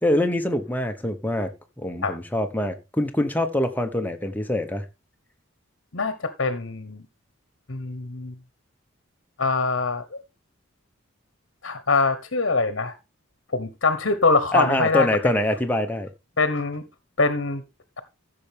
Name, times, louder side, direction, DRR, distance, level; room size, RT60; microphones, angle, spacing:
voice 1, 0.0-4.9 14.5-16.1, left 1 dB, 10° left, 1.1 m, -24 dB
voice 2, 5.9-7.0 7.7-8.3 9.4-10.2 11.6-12.9 13.5-15.1 16.4-16.8 17.2-17.6, left 3 dB, 60° left, 1.1 m, -23 dB
15.0 x 6.8 x 3.5 m
head